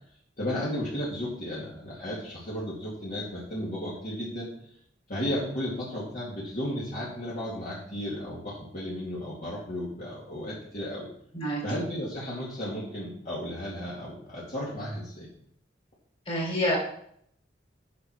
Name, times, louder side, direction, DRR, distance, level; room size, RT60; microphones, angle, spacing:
voice 1, 0.4-4.5 5.1-11.1 11.6-15.3, equal, 45° left, -8 dB, 2.7 m, -34 dB
voice 2, 16.3-16.8, equal, 30° left, -1 dB, 3.8 m, -27 dB
8.3 x 6.4 x 5.8 m, 0.68 s
head